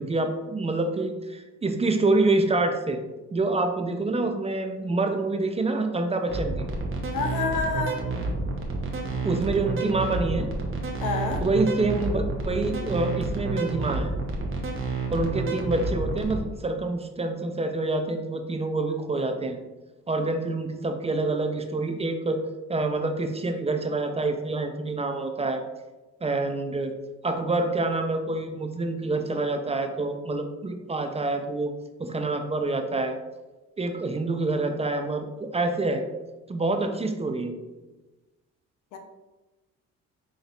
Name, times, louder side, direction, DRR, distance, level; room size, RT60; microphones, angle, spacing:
voice 1, 0.0-3.0 3.3-6.7 9.2-10.5 11.4-14.1 15.1-19.6 20.1-22.4 22.7-25.7 26.2-26.9 27.2-31.7 32.0-33.2 33.8-36.0 36.5-37.6, right 2 dB, 20° right, 6 dB, 0.4 m, -27 dB
sound 1, 6.3-16.4, right 3 dB, 45° right, 0.9 m, -29 dB
voice 2, 7.1-8.0 11.0-11.4 38.9-39.0, left 4 dB, 90° left, 4 dB, 0.7 m, -28 dB
5.3 x 3.7 x 2.3 m, 1.1 s
cardioid pair, 90°, 30 cm